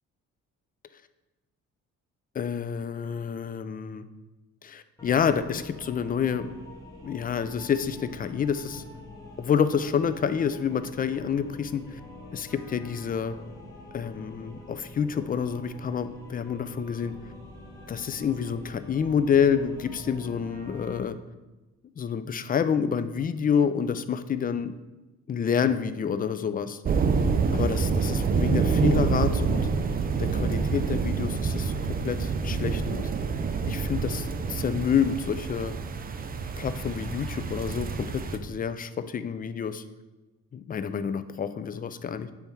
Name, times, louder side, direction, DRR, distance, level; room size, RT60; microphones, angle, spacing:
voice 1, 2.3-4.1 4.6-6.5 7.0-8.8 9.4-12.0 12.3-13.4 13.9-17.1 17.9-21.2 22.0-24.7 25.3-26.8 27.5-29.7 30.2-31.8 32.0-33.1 33.7-35.7 36.6-39.8 40.5-42.3, left 7 dB, 30° left, 12 dB, 0.4 m, -28 dB
sound 1, 5.0-21.0, left 2 dB, 10° left, 1.3 m, -45 dB
sound 2, 26.8-38.4, right 5 dB, 30° right, 0.5 m, -27 dB
6.8 x 3.5 x 4.4 m, 1.1 s
cardioid pair, 90°, 30 cm